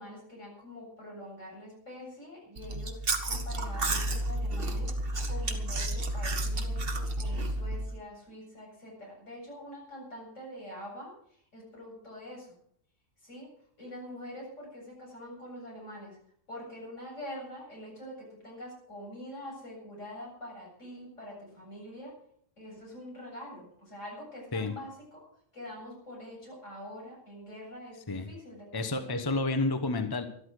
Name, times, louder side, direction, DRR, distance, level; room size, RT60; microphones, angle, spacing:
voice 1, 0.0-3.0 3.3-4.9 5.3-12.6 13.2-13.5 13.8-16.2 16.5-22.1 22.6-25.3 25.5-29.2, left 1 dB, 80° left, -2 dB, 8.0 m, -45 dB
Chewing mastication, 2.6-7.9, right 1 dB, 50° right, 1.7 m, -31 dB
voice 2, 28.7-30.3, left 2 dB, 20° left, 8 dB, 1.1 m, -30 dB
12.5 x 12.5 x 6.5 m, 0.64 s
omnidirectional pair, 1.3 m